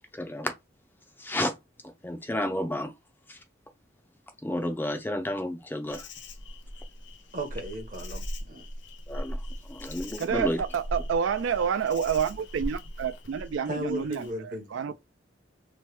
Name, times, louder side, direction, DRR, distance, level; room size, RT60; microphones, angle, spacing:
voice 1, 0.1-0.5 1.2-1.5 2.0-2.9 3.3-3.4 4.4-6.1 9.1-9.4 9.7-10.6, left 1 dB, 10° left, 0.4 m, -31 dB
Insect, 5.9-14.3, equal, 70° left, 0.6 m, -39 dB
voice 2, 7.3-8.7 13.7-14.9, right 1 dB, 45° right, 0.8 m, -36 dB
voice 3, 10.2-14.3 14.7-14.9, right 7 dB, 85° right, 0.3 m, -28 dB
3.0 x 2.1 x 3.0 m
head